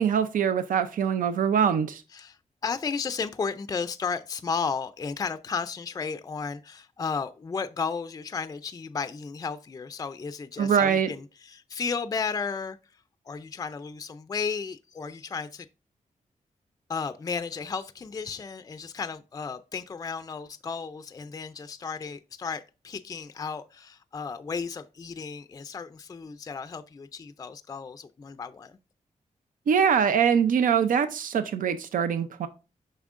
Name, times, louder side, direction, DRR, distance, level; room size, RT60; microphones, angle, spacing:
voice 1, 0.0-2.0 10.6-11.1 29.7-32.5, right 7 dB, 90° right, 0.5 m, -23 dB
voice 2, 2.1-15.7 16.9-28.8, left 5 dB, 25° left, 0.3 m, -34 dB
7.1 x 5.5 x 2.4 m
wide cardioid pair, 115°, 13 cm